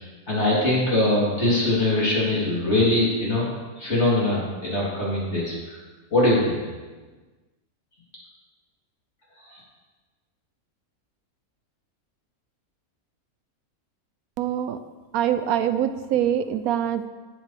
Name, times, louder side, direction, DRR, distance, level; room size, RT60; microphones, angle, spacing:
voice 1, 0.3-3.5 3.8-5.8 6.1-6.6 9.4-9.6, left 1 dB, 50° left, -6 dB, 3.8 m, -22 dB
voice 2, 14.4-14.8 15.1-17.1, right 10 dB, 80° right, 11 dB, 1.1 m, -24 dB
15.5 x 8.5 x 3.5 m, 1.3 s
omnidirectional pair, 1.5 m